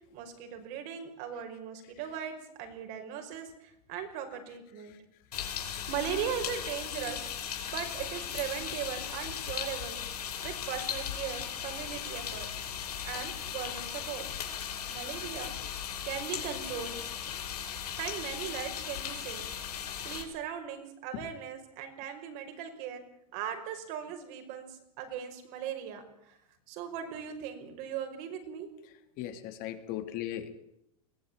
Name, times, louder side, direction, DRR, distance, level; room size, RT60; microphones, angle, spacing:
voice 1, 0.1-5.0 5.6-7.3 7.6-10.0 10.4-12.5 13.0-14.3 14.9-15.5 16.0-17.0 18.0-19.5 20.0-23.0 23.3-26.4 26.7-28.7, right 8 dB, 55° right, 5 dB, 5.6 m, -38 dB
sound 1, 5.3-20.2, left 8 dB, 85° left, 5.3 m, -37 dB
voice 2, 5.3-5.8 21.1-21.2 29.2-30.5, left 12 dB, 50° left, 8 dB, 2.9 m, -39 dB
22.0 x 16.5 x 9.0 m, 0.80 s
hypercardioid pair, 120°, 19 cm